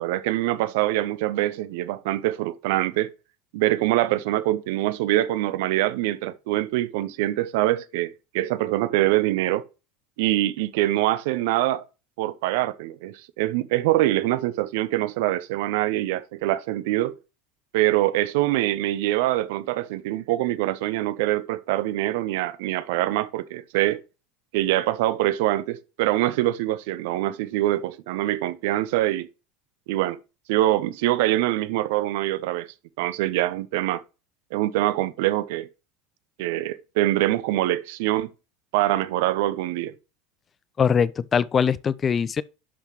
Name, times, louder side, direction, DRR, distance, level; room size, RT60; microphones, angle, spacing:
voice 1, 0.0-3.1 3.5-9.7 10.2-11.8 12.2-17.2 17.7-24.0 24.5-29.3 29.9-30.2 30.5-32.7 33.0-34.0 34.5-35.7 36.4-38.3 38.7-39.9, right 15 dB, 65° right, 0.7 m, -24 dB
voice 2, 40.8-42.4, left 7 dB, 30° left, 0.5 m, -22 dB
11.0 x 5.8 x 3.1 m
figure-of-eight pair, 75°, 0 cm